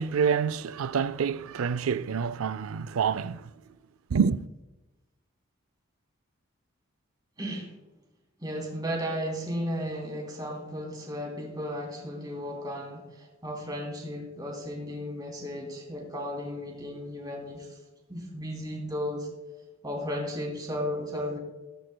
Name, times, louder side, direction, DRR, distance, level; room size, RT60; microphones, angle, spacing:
voice 1, 0.0-3.5 4.1-4.5, right 6 dB, 80° right, 0.4 m, -27 dB
voice 2, 7.4-7.7 8.4-17.8 18.1-19.3 19.8-21.4, equal, 20° right, 3.0 m, -34 dB
15.0 x 14.0 x 2.2 m
head